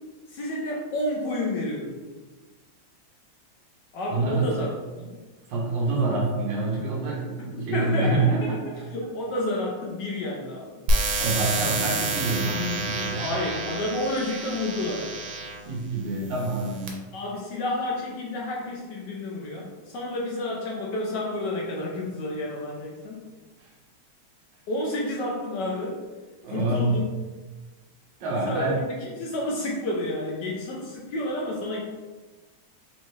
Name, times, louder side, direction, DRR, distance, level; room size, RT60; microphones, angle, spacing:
voice 1, 0.3-2.0 3.9-5.2 7.7-10.7 13.1-15.2 17.1-23.2 24.7-26.0 26.5-27.1 28.5-31.8, left 1 dB, 70° left, -2 dB, 1.1 m, -30 dB
voice 2, 4.1-4.7 5.5-8.6 11.0-13.3 15.6-17.0 23.6-23.7 26.4-26.9 28.2-28.8, right 3 dB, 70° right, -3 dB, 1.5 m, -26 dB
sound 1, 10.9-15.6 16.3-16.9, right 2 dB, 85° right, 1.5 m, -28 dB
4.3 x 2.7 x 3.1 m, 1.3 s
omnidirectional pair, 2.2 m